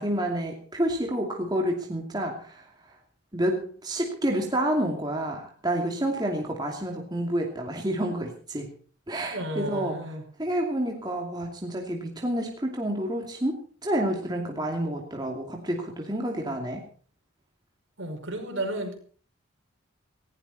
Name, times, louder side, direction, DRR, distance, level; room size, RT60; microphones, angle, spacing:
voice 1, 0.0-3.0 3.3-8.7 9.1-10.1 10.4-16.8, right 1 dB, 20° right, 1 dB, 2.6 m, -29 dB
voice 2, 9.3-10.2 18.0-19.0, right 1 dB, 65° right, 4 dB, 5.4 m, -32 dB
19.5 x 16.0 x 4.2 m, 0.43 s
head